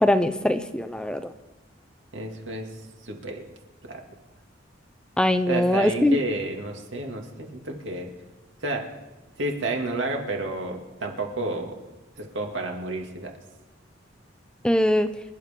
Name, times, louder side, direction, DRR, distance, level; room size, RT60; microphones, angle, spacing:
voice 1, 0.0-1.2 5.2-6.2 14.6-15.1, left 1 dB, 5° left, 10 dB, 0.5 m, -21 dB
voice 2, 2.1-3.4 3.8-4.0 5.5-8.1 8.6-8.9 9.4-11.8 12.2-13.3, right 2 dB, 80° right, 2 dB, 2.3 m, -31 dB
26.5 x 11.0 x 3.7 m, 1.1 s
head